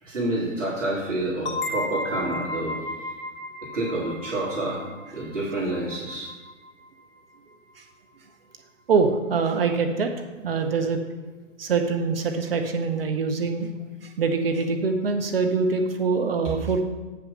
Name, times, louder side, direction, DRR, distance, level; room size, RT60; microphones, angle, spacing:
voice 1, 0.0-2.8 3.7-4.8 5.1-6.3, right 2 dB, 70° right, -5 dB, 3.1 m, -28 dB
sound 1, 1.5-6.9, left 1 dB, 45° left, 1.0 m, -34 dB
voice 2, 8.9-10.1 10.4-11.0 11.6-13.7 14.0-16.8, right 4 dB, 50° right, 5 dB, 0.9 m, -24 dB
8.9 x 6.1 x 5.7 m, 1.2 s
figure-of-eight pair, 125°, 38 cm